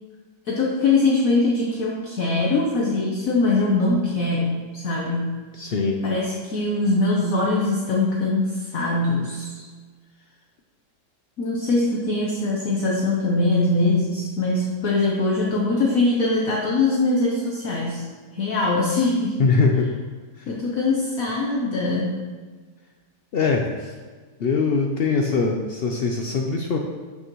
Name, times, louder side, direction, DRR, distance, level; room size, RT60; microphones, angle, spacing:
voice 1, 0.4-5.4 6.0-9.7 11.4-18.1 18.3-19.4 20.5-22.1, left 2 dB, 55° left, -2 dB, 1.2 m, -22 dB
voice 2, 5.5-6.0 19.4-19.9 20.4-20.5 23.3-23.7 24.4-26.8, left 4 dB, 80° left, 2 dB, 0.5 m, -22 dB
12.0 x 5.8 x 3.1 m, 1.4 s
omnidirectional pair, 1.9 m